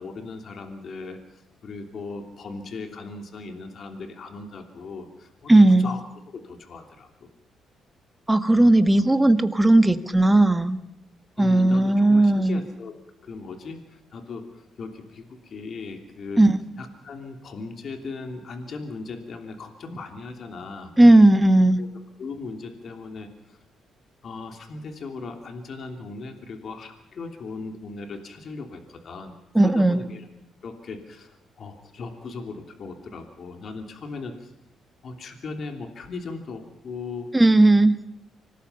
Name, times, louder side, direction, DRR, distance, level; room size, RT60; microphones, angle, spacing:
voice 1, 0.0-7.3 11.4-12.9 13.2-16.4 16.8-20.9 21.8-21.9 22.2-23.6 24.2-29.3 29.6-30.3 30.6-34.5 35.0-37.3, left 4 dB, 55° left, 5 dB, 3.0 m, -38 dB
voice 2, 5.5-5.9 8.3-10.8 11.4-12.6 16.4-16.6 21.0-21.8 29.5-30.0 37.3-38.0, right 1 dB, 10° right, 10 dB, 1.6 m, -16 dB
25.5 x 19.0 x 5.6 m, 0.85 s
cardioid pair, 90°, 0 cm